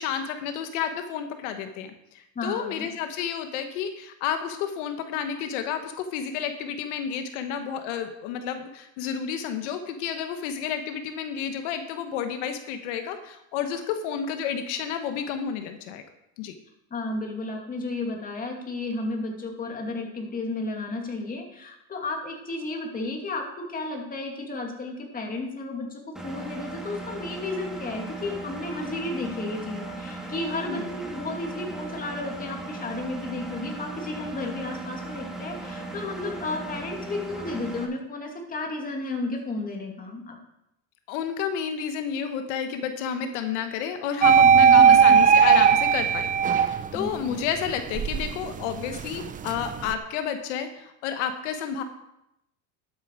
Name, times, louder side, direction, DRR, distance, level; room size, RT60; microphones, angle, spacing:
voice 1, 0.0-16.0 16.4-16.5 30.7-30.9 41.1-51.8, left 8 dB, 85° left, 7 dB, 1.2 m, -31 dB
voice 2, 2.4-2.9 16.9-40.4 44.6-45.2 46.9-47.1, left 2 dB, 25° left, 1 dB, 2.6 m, -33 dB
Engine, 26.2-37.9, right 2 dB, ahead, 2.0 m, -37 dB
sound 1, 44.2-47.1 47.6-49.9, right 7 dB, 25° right, 0.6 m, -18 dB
11.5 x 8.8 x 4.7 m, 0.82 s
supercardioid pair, 120°, 35 cm